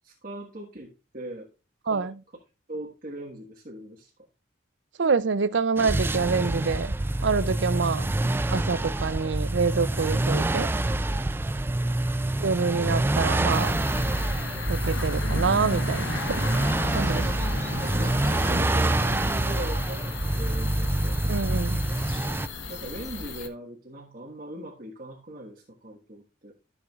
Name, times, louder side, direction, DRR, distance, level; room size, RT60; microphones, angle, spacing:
voice 1, 0.0-1.5 1.8-2.1 2.7-4.1 11.8-12.1 17.7-21.4 22.2-22.4 22.7-26.5, right 1 dB, 45° right, 1.6 m, -40 dB
voice 2, 5.0-7.0 7.2-8.1 8.5-10.7 12.4-13.8 14.7-16.4 16.9-17.3 21.3-21.8, right 4 dB, 70° right, 0.5 m, -26 dB
sound 1, 5.8-22.5, right 1 dB, 10° right, 0.3 m, -26 dB
sound 2, 13.5-23.5, left 3 dB, 75° left, 1.2 m, -35 dB
Bird vocalization bird call bird song, 15.1-23.4, equal, 15° left, 2.9 m, -55 dB
14.0 x 6.4 x 2.4 m
head